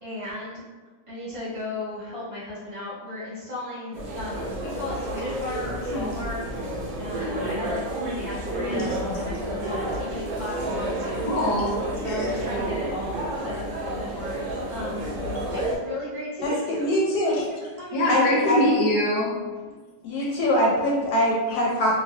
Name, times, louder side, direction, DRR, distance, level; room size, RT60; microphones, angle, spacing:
voice 1, 0.0-0.6 1.1-6.4 6.9-11.3 12.0-15.1 15.5-16.9 17.3-18.5, left 1 dB, 50° right, -11 dB, 0.3 m, -35 dB
sound 1, 3.9-15.8, right 1 dB, 65° right, 0.7 m, -30 dB
voice 2, 8.6-9.2 11.2-11.7 12.1-12.3 17.3-17.4 17.9-19.4 21.5-21.6, left 1 dB, 85° left, -3 dB, 1.3 m, -24 dB
voice 3, 16.4-17.3 18.1-18.7 20.0-22.0, left 1 dB, 70° left, -3 dB, 1.0 m, -23 dB
3.1 x 2.2 x 2.6 m, 1.3 s
omnidirectional pair, 1.9 m